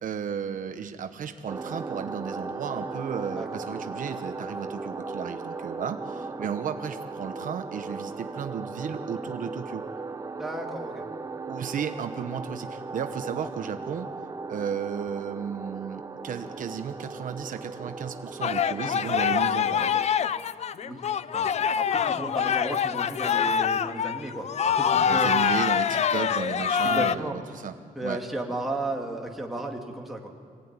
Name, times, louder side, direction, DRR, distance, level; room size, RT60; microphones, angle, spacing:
voice 1, 0.0-9.8 11.5-14.1 14.5-19.9 25.0-27.7 28.0-28.2, right 7 dB, 65° right, 8 dB, 1.0 m, -34 dB
sound 1, 1.5-20.1, right 3 dB, 20° right, 0.8 m, -37 dB
voice 2, 3.3-3.7 10.4-11.0 20.8-21.0 21.3-21.5 21.8-25.3 26.8-27.4 28.0-30.3, right 1 dB, ahead, 0 dB, 2.4 m, -34 dB
sound 2, 18.4-27.1, left 8 dB, 45° left, 0.5 m, -25 dB
24.0 x 17.0 x 9.6 m, 2.2 s
wide cardioid pair, 165°, 15 cm